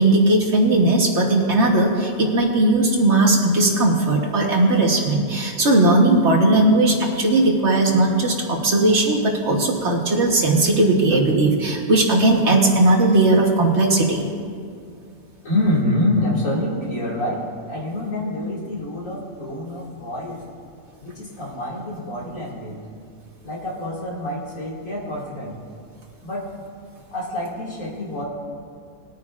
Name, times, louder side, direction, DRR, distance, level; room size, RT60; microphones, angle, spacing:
voice 1, 0.0-14.2, right 2 dB, 55° right, 1 dB, 1.4 m, -18 dB
voice 2, 15.4-17.4 17.7-20.4 21.0-22.8 23.4-25.6 26.2-26.5 27.1-28.2, left 1 dB, 65° left, -5 dB, 2.6 m, -26 dB
20.5 x 9.0 x 2.4 m, 2.2 s
omnidirectional pair, 1.5 m